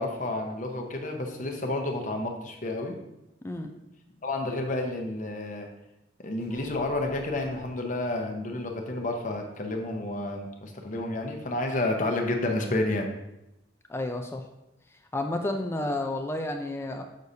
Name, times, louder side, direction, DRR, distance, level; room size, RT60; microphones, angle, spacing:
voice 1, 0.0-2.9 4.2-5.7 6.2-13.1, left 2 dB, 40° left, 3 dB, 0.8 m, -30 dB
sound 1, 6.4-7.8 9.5-10.5 10.8-10.9 11.3-11.5, right 1 dB, 50° right, 1.0 m, -50 dB
voice 2, 13.9-14.5 15.1-17.0, left 1 dB, 10° left, 4 dB, 0.4 m, -31 dB
6.4 x 6.3 x 2.8 m, 0.90 s
head